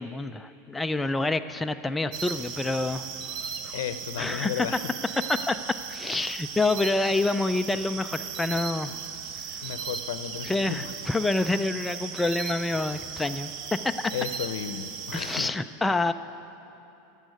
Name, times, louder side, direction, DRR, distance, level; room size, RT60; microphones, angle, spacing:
voice 1, 0.0-3.8 4.2-4.7 5.3-8.9 9.6-9.7 10.4-14.1 15.1-16.1, left 2 dB, 5° left, 8 dB, 0.3 m, -28 dB
sound 1, 2.1-15.5, right 7 dB, 50° right, 0.8 m, -37 dB
voice 2, 3.6-4.8 8.9-9.0 9.6-10.9 14.1-15.5, left 10 dB, 80° left, 12 dB, 0.6 m, -34 dB
12.5 x 7.3 x 9.3 m, 2.9 s
supercardioid pair, 140°, 0 cm